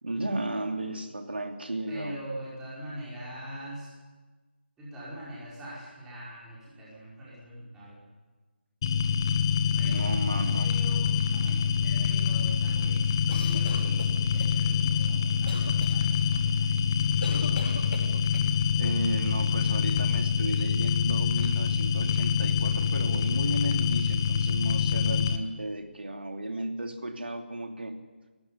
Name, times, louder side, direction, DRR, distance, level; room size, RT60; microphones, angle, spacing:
voice 1, 0.0-2.2 9.8-10.7 18.8-28.0, right 1 dB, 60° right, 5 dB, 2.8 m, -34 dB
voice 2, 1.9-3.9 4.8-8.0 9.7-17.2, right 1 dB, 5° right, -9 dB, 5.3 m, -43 dB
sound 1, 8.8-25.4, left 6 dB, 20° left, 1.0 m, -26 dB
sound 2, 13.3-14.5 15.5-15.9 17.2-18.5, left 1 dB, 60° left, 4.4 m, -39 dB
18.5 x 15.5 x 10.0 m, 1.3 s
figure-of-eight pair, 155°, 6 cm